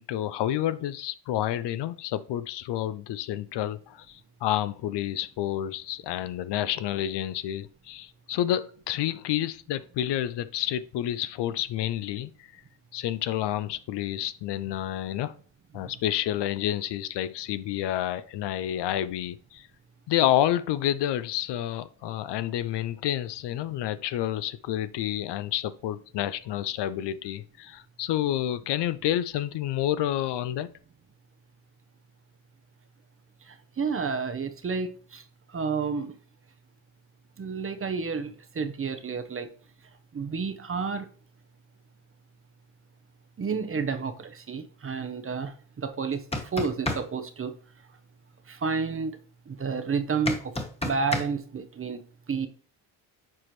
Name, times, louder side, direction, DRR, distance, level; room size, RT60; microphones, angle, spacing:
voice 1, 0.0-12.6 12.9-15.4 15.7-19.7 20.1-30.7, left 12 dB, 60° left, 0.5 m, -29 dB
voice 2, 33.5-35.2 35.5-36.1 37.4-39.5 40.1-41.1 43.4-46.2 46.5-47.5 48.5-49.2 49.5-50.5 50.8-52.0 52.3-52.5, right 5 dB, 30° right, 0.8 m, -30 dB
sound 1, 46.1-47.0 50.3-51.3, left 2 dB, 15° left, 1.2 m, -29 dB
7.6 x 4.3 x 3.1 m
supercardioid pair, 75°, 47 cm